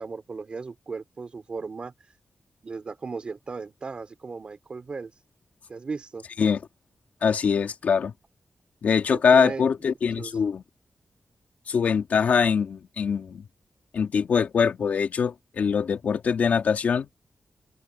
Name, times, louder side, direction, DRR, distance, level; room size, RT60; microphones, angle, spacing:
voice 1, 0.0-2.2 2.6-5.2 5.7-6.2 9.1-9.7 10.2-10.4, right 4 dB, 40° right, 4.3 m, -36 dB
voice 2, 7.2-8.1 8.8-10.6 11.7-13.4 13.9-17.1, left 6 dB, 75° left, 2.1 m, -23 dB
open air
wide cardioid pair, 165°, 3 cm